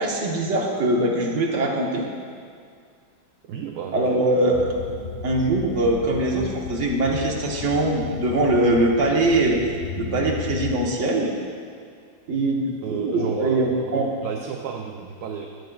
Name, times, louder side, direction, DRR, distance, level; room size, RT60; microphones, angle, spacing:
voice 1, 0.0-2.1 3.9-4.6 5.2-9.6 10.0-11.3 12.3-14.1, right 2 dB, 45° right, -1 dB, 1.3 m, -22 dB
voice 2, 3.4-4.3 12.8-15.5, right 6 dB, 70° right, 2 dB, 1.0 m, -32 dB
sound 1, 4.5-10.8, left 5 dB, 45° left, 1.2 m, -35 dB
15.5 x 9.3 x 2.4 m, 2.2 s
omnidirectional pair, 2.1 m